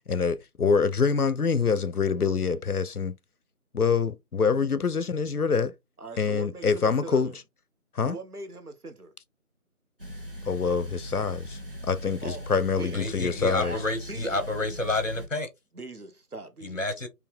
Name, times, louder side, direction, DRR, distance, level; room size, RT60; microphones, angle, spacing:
voice 1, 0.1-3.2 3.7-5.7 6.2-7.3 8.0-8.2 10.5-13.8, left 5 dB, 80° left, 0.7 m, -25 dB
voice 2, 6.0-7.4 8.0-9.1 12.2-13.0 13.6-14.4 15.7-16.8, right 2 dB, 80° right, 1.3 m, -41 dB
sound 1, 10.0-15.3, equal, 35° right, 1.1 m, -40 dB
voice 3, 12.9-15.5 16.6-17.1, left 2 dB, 55° left, 1.4 m, -29 dB
4.7 x 2.8 x 3.6 m
figure-of-eight pair, 175°, 45 cm